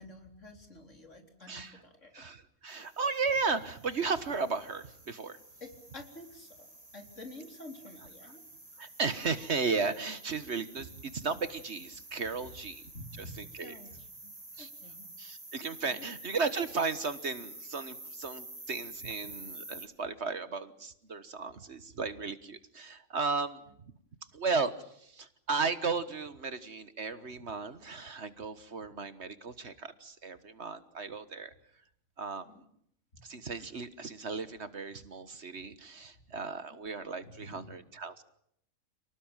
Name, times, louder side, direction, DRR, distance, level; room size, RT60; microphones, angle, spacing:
voice 1, 0.0-2.1 5.6-8.4 12.9-14.0 14.2-14.3 14.6-15.0 15.9-16.1 32.5-32.6 33.1-33.2 37.2-37.7, left 1 dB, 60° left, 5 dB, 4.3 m, -49 dB
voice 2, 1.5-1.8 2.1-5.4 8.2-8.3 8.8-12.8 13.2-13.8 14.6-14.7 15.2-23.9 24.3-31.5 32.2-32.6 33.2-38.2, right 4 dB, 55° right, 13 dB, 1.6 m, -35 dB
sound 1, 2.7-19.9, right 2 dB, 25° right, 3.1 m, -50 dB
29.0 x 19.0 x 8.9 m, 0.71 s
omnidirectional pair, 1.4 m